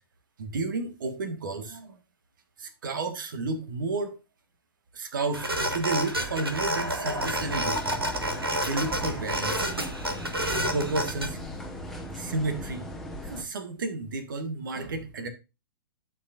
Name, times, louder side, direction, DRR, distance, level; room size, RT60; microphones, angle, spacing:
voice 1, 0.4-2.0 2.6-4.2 4.9-7.9 8.6-10.0 10.7-11.4 12.1-12.9 13.2-15.3, right 3 dB, 60° right, 1.6 m, -32 dB
sound 1, 5.3-11.3, right 1 dB, 85° right, 1.6 m, -29 dB
sound 2, 7.2-13.4, equal, ahead, 1.3 m, -38 dB
13.0 x 5.4 x 2.5 m
figure-of-eight pair, 110°, 12 cm